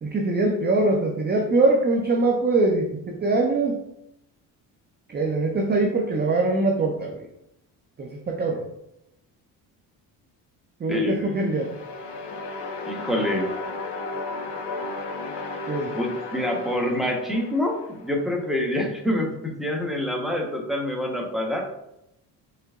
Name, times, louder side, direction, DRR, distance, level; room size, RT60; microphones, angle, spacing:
voice 1, 0.0-3.8 5.1-7.3 8.0-8.7 10.8-11.7 15.7-16.0, right 2 dB, 20° right, 2 dB, 0.5 m, -23 dB
voice 2, 10.9-11.3 12.9-13.4 15.9-21.7, left 1 dB, ahead, 0 dB, 1.1 m, -26 dB
sound 1, 11.4-18.4, left 3 dB, 55° left, 1.0 m, -34 dB
4.4 x 3.2 x 2.5 m, 0.82 s
hypercardioid pair, 60°, 48 cm